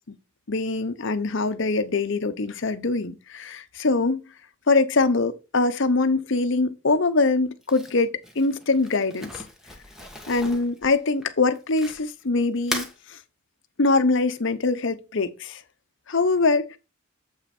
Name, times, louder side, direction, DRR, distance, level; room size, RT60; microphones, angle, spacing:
voice 1, 0.5-4.2 4.7-9.4 10.3-13.2 13.8-15.6 16.1-16.8, left 3 dB, 55° left, 0.8 m, -23 dB
Crumpling crinkling, 7.6-12.2 12.6-12.9, left 1 dB, ahead, 1.3 m, -37 dB
7.5 x 5.7 x 4.3 m
head